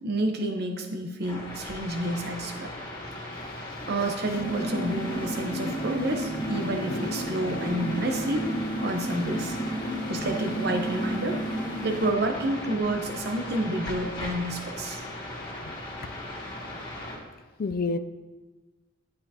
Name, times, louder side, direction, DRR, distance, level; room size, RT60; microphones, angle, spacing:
voice 1, 0.0-2.7 3.9-8.5 8.8-9.6 10.1-11.4 11.8-15.0, right 1 dB, 55° right, 4 dB, 0.9 m, -29 dB
sound 1, 1.2-17.2, left 1 dB, 25° left, 2.3 m, -38 dB
voice 2, 3.3-3.9 6.9-7.1 17.6-18.0, left 3 dB, 50° left, 12 dB, 0.4 m, -31 dB
sound 2, 4.3-12.1, right 1 dB, 25° right, 1.4 m, -32 dB
11.0 x 7.7 x 2.9 m, 1.2 s
head